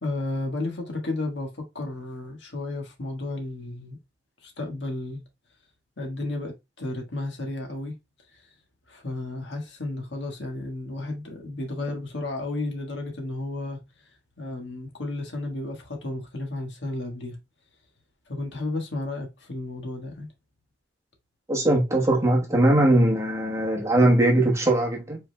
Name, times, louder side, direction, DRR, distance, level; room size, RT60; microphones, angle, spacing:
voice 1, 0.0-4.0 4.4-5.2 6.0-7.9 8.9-13.8 14.4-17.4 18.3-20.3, left 2 dB, 75° left, 1.5 m, -33 dB
voice 2, 21.5-25.2, right 1 dB, 15° right, 1.1 m, -20 dB
5.2 x 4.2 x 2.2 m
head